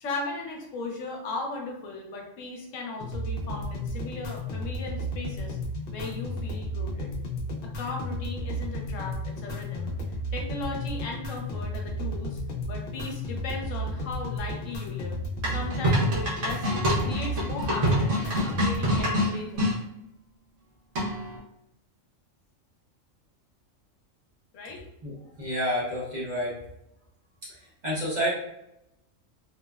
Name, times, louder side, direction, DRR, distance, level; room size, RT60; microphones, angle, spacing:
voice 1, 0.0-5.6 5.9-7.1 7.8-12.4 12.7-15.2 15.5-16.7 17.0-19.8 24.5-24.8, left 3 dB, 75° left, 0 dB, 0.9 m, -37 dB
sound 1, 3.0-19.0, left 1 dB, 60° left, 0.6 m, -33 dB
sound 2, 15.4-19.7 20.9-21.4, equal, 75° right, 1.2 m, -26 dB
voice 2, 25.0-26.6 27.6-28.3, equal, 40° right, -8 dB, 0.7 m, -29 dB
2.8 x 2.0 x 2.2 m, 0.82 s
omnidirectional pair, 1.3 m